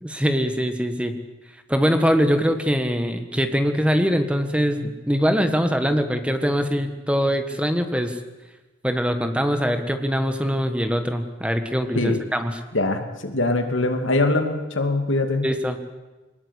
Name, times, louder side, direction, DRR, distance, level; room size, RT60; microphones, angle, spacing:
voice 1, 0.0-1.2 1.7-8.2 8.8-12.6 15.4-15.8, equal, 5° right, 7 dB, 1.5 m, -22 dB
voice 2, 12.7-15.5, left 2 dB, 75° left, 6 dB, 2.6 m, -22 dB
23.0 x 20.0 x 8.3 m, 1.1 s
head